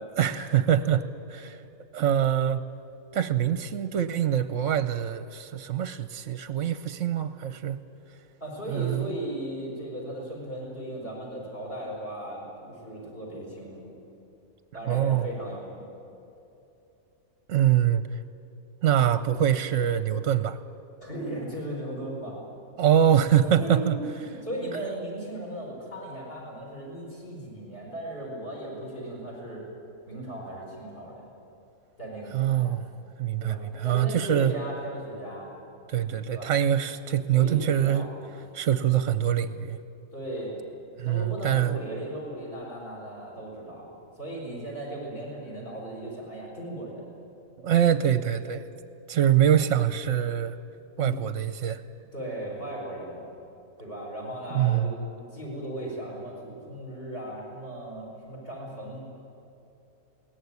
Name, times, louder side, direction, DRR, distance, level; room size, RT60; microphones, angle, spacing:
voice 1, 0.2-1.6 1.9-2.6 3.1-7.8 8.7-9.1 14.9-15.3 17.5-18.0 18.8-20.6 22.8-24.0 32.3-32.8 33.2-34.5 35.9-38.1 38.5-39.8 41.0-41.8 47.6-48.7 49.1-50.6 51.0-51.8 54.5-54.9, right 10 dB, 60° right, 12 dB, 1.0 m, -24 dB
voice 2, 8.4-13.9 14.7-15.9 21.0-22.5 23.4-29.6 30.1-31.2 32.0-32.7 33.4-35.5 36.3-36.5 37.3-38.1 40.1-40.6 41.0-47.1 50.9-51.3 52.1-53.3 53.8-59.0, right 1 dB, 40° left, -3 dB, 5.2 m, -37 dB
21.5 x 18.0 x 9.6 m, 2.9 s
omnidirectional pair, 1.6 m